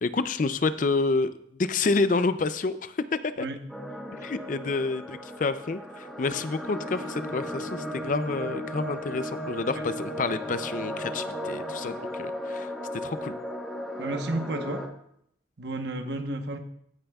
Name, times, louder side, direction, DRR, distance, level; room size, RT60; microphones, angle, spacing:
voice 1, 0.0-3.5 4.1-12.7 13.0-13.3, left 3 dB, 45° left, 12 dB, 0.4 m, -29 dB
sound 1, 3.7-14.9, equal, ahead, 1.1 m, -36 dB
voice 2, 14.0-14.9 15.6-16.6, right 2 dB, 65° right, 6 dB, 1.1 m, -31 dB
15.5 x 8.9 x 2.3 m, 0.70 s
head